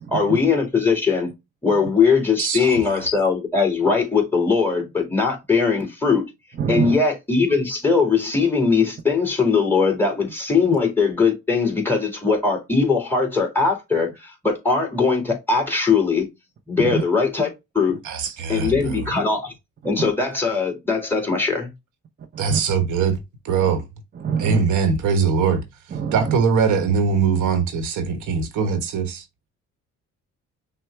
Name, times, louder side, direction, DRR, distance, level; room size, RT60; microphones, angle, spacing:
voice 1, 0.1-1.3 1.6-6.3 6.7-16.3 16.7-17.5 17.7-18.0 18.5-19.5 19.8-21.7, left 5 dB, 5° left, 2.1 m, -20 dB
voice 2, 2.4-2.8 18.0-19.1 22.4-23.2 23.4-23.8 24.4-25.6 26.1-29.2, right 5 dB, 85° right, 1.2 m, -21 dB
voice 3, 6.6-6.9 16.8-17.0 22.3-22.6 24.2-24.6 26.0-26.1, right 7 dB, 35° right, 0.6 m, -24 dB
6.1 x 2.2 x 3.2 m
cardioid pair, 90°, 30 cm